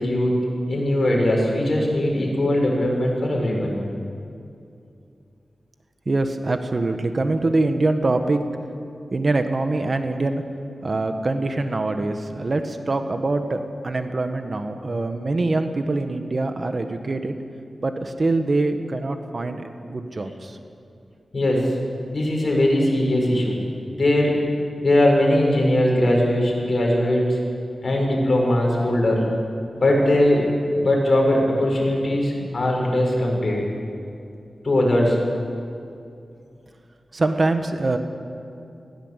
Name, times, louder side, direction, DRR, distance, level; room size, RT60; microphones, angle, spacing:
voice 1, 0.0-3.8 21.3-21.8 22.1-23.6 23.9-24.4 24.8-27.4 27.8-29.2 29.7-30.5 30.7-33.6 34.6-35.2, left 1 dB, 50° left, -2 dB, 6.8 m, -20 dB
voice 2, 6.0-8.4 9.1-10.4 10.8-17.3 17.8-20.6 37.1-38.0, right 2 dB, 50° right, 7 dB, 1.6 m, -24 dB
19.5 x 16.5 x 8.3 m, 2.5 s
cardioid pair, 60°, 0 cm